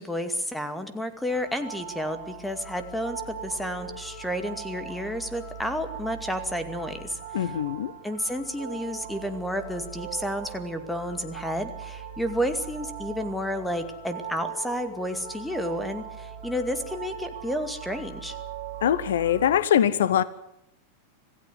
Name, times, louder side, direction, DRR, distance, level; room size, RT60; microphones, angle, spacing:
voice 1, 0.0-7.5 8.0-18.4, equal, 5° left, 2.3 m, -31 dB
sound 1, 1.3-19.6, right 7 dB, 65° right, 7.3 m, -40 dB
voice 2, 7.3-7.9 18.8-20.2, left 10 dB, 60° left, 0.8 m, -22 dB
26.0 x 16.0 x 8.1 m
figure-of-eight pair, 90°, 0 cm